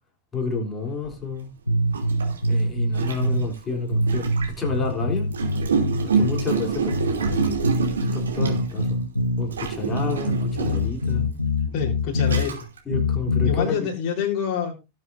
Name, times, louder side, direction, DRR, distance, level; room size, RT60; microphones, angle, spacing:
voice 1, 0.3-1.5 2.5-4.3 4.6-5.3 6.0-7.6 8.1-9.0 9.4-11.3 12.8-13.9, left 4 dB, 20° left, 3.4 m, -30 dB
Gurgling, 1.0-1.1 1.9-4.6 5.3-8.9 9.5-11.0 11.7-11.8 12.2-12.8, right 6 dB, 70° right, 3.0 m, -27 dB
sound 1, 1.7-3.5 3.9-6.5 6.9-9.5 9.9-12.5 12.9-13.6, left 1 dB, 85° left, 1.2 m, -24 dB
voice 2, 11.7-12.6 13.5-14.8, left 7 dB, 40° left, 4.1 m, -27 dB
18.0 x 7.6 x 2.7 m
figure-of-eight pair, 90°, 0 cm